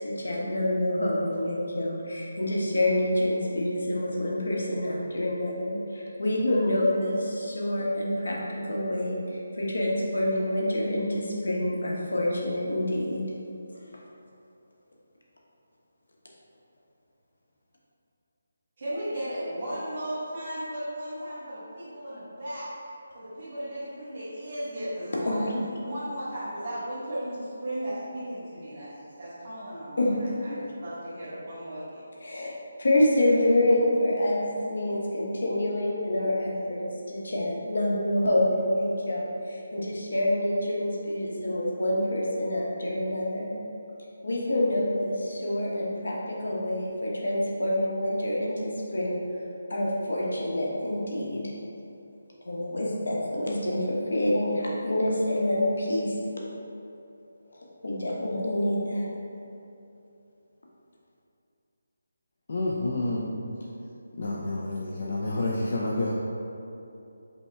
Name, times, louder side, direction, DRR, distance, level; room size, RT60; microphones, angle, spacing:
voice 1, 0.0-13.3 25.3-25.6 30.0-30.1 30.5-30.6 32.2-43.5 44.2-49.2 49.7-51.5 52.4-56.2 57.5-59.1, left 1 dB, 75° left, -3 dB, 1.1 m, -27 dB
voice 2, 18.8-22.7 23.1-25.5 25.8-28.9 29.2-32.0, right 1 dB, 35° right, -13 dB, 1.1 m, -35 dB
voice 3, 62.5-63.4 64.2-66.1, left 2 dB, 35° left, -4 dB, 0.4 m, -29 dB
5.2 x 2.1 x 4.6 m, 2.8 s
hypercardioid pair, 180°, 0 cm